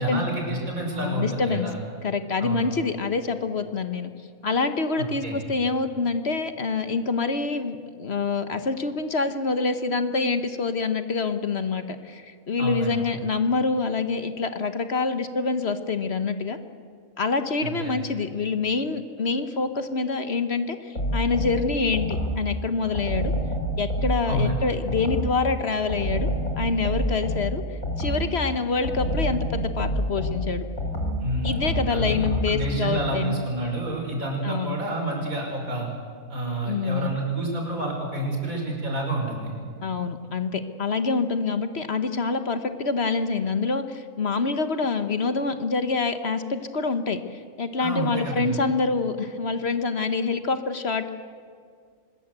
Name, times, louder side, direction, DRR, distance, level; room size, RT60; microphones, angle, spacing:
voice 1, 0.0-1.8 2.4-2.7 5.2-5.4 12.6-13.0 17.6-17.9 24.3-24.6 31.2-32.1 32.5-35.9 36.3-39.5 47.8-48.6, right 2 dB, 75° right, 0 dB, 5.8 m, -28 dB
voice 2, 0.9-1.7 2.0-4.1 4.4-16.6 17.2-23.3 23.8-26.3 26.6-27.6 28.0-30.7 31.4-33.4 34.4-34.8 36.7-37.2 39.8-51.1, left 4 dB, 50° left, 9 dB, 1.3 m, -26 dB
sound 1, 20.9-22.5 22.9-25.4 25.9-28.4 28.8-32.6, equal, 80° left, 5.1 m, -28 dB
25.0 x 21.0 x 8.1 m, 2.1 s
omnidirectional pair, 1.5 m